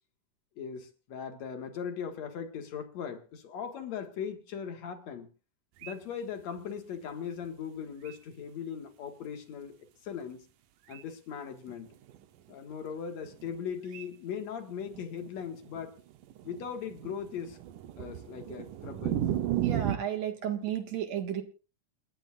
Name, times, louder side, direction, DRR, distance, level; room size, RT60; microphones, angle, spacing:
voice 1, 0.6-5.3 5.8-9.8 10.0-10.5 10.9-11.9 12.5-16.0 16.4-17.6 18.0-19.2, left 7 dB, 60° left, 2.9 m, -39 dB
sound 1, 5.8-6.0 7.4-7.5 8.1-8.2 10.9-11.0 11.7-12.3 12.7-12.8 13.3-13.6 13.9-14.1 14.4-14.5 14.7-20.0, right 12 dB, 90° right, 2.6 m, -34 dB
voice 2, 19.6-21.4, right 9 dB, 60° right, 2.9 m, -33 dB
28.5 x 11.0 x 2.5 m
omnidirectional pair, 3.6 m